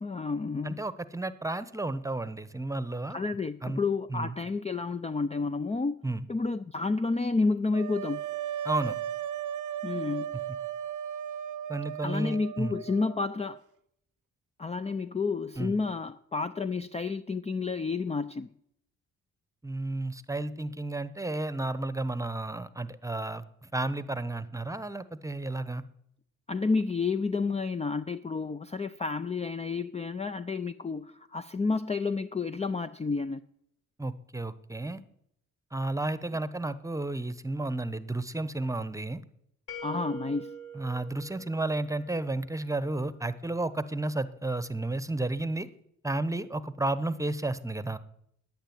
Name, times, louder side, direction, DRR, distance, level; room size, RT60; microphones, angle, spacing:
voice 1, 0.0-0.8 3.1-8.3 9.8-10.4 12.0-13.6 14.6-18.5 26.5-33.4 39.8-40.6, left 4 dB, 20° left, 0.5 m, -30 dB
voice 2, 0.6-3.2 3.6-3.8 4.1-4.3 6.0-6.3 8.6-9.0 11.7-12.8 15.6-15.8 19.6-25.8 34.0-35.0 35.7-39.2 40.7-45.7 46.0-48.0, right 2 dB, 10° right, 1.0 m, -32 dB
sound 1, 7.7-13.6, right 10 dB, 65° right, 0.6 m, -36 dB
sound 2, 39.7-42.5, right 3 dB, 85° left, 2.1 m, -44 dB
10.5 x 8.9 x 9.4 m
supercardioid pair, 55°, 34 cm